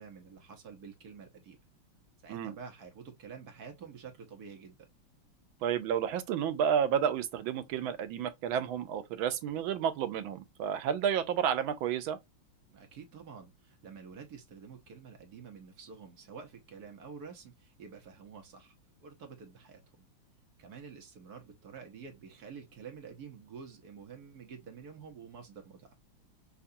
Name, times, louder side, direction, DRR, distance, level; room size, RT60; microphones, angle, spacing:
voice 1, 0.0-1.6 2.2-4.8 12.7-18.8 19.0-19.8 20.6-25.9, right 6 dB, 60° right, 1.2 m, -49 dB
voice 2, 5.6-12.2, right 8 dB, 80° right, 1.4 m, -31 dB
5.7 x 2.3 x 2.6 m
omnidirectional pair, 2.2 m